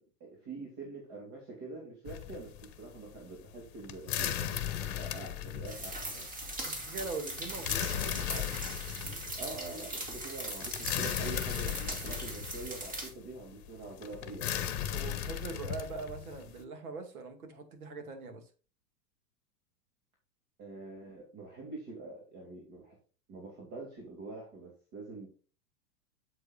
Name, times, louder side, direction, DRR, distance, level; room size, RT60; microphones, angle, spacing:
voice 1, 0.2-6.3 9.3-14.5 20.6-23.0 23.3-25.3, right 3 dB, 35° right, 2.8 m, -45 dB
sound 1, 2.1-16.6, left 10 dB, 40° left, 1.1 m, -37 dB
sound 2, 5.7-13.1, right 1 dB, 15° right, 2.1 m, -40 dB
voice 2, 6.6-8.5 14.9-18.5, right 4 dB, 60° right, 2.3 m, -42 dB
8.0 x 7.8 x 2.5 m
figure-of-eight pair, 100°, 49 cm